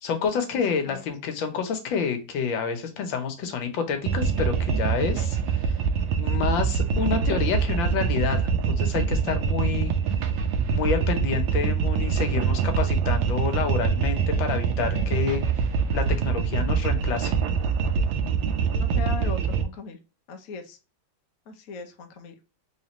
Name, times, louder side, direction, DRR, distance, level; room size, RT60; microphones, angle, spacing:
voice 1, 0.0-5.4 6.1-9.9 10.7-15.4 15.9-17.4, left 6 dB, 85° left, 7 dB, 1.6 m, -28 dB
sound 1, 4.1-19.6, right 6 dB, 85° right, 1.4 m, -24 dB
voice 2, 18.8-20.0 20.3-20.8 21.5-22.3, left 4 dB, 55° left, 4 dB, 1.0 m, -38 dB
3.7 x 3.2 x 2.8 m, 0.31 s
omnidirectional pair, 2.0 m